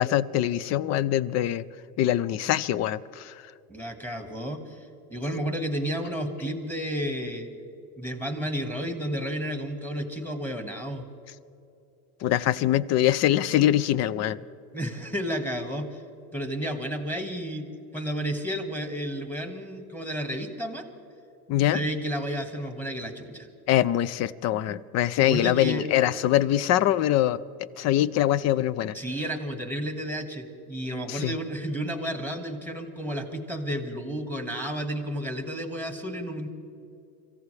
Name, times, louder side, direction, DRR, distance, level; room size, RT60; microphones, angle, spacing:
voice 1, 0.0-1.6 2.0-3.3 12.2-14.4 21.5-21.8 23.7-28.9 31.1-31.3, left 12 dB, 40° left, 19 dB, 0.5 m, -23 dB
voice 2, 3.7-7.5 8.0-11.0 14.7-16.0 16.3-17.7 17.9-20.8 21.7-23.5 25.2-25.9 28.9-36.5, equal, 5° left, 5 dB, 1.7 m, -32 dB
26.0 x 15.0 x 3.3 m, 2.7 s
supercardioid pair, 120°, 45 cm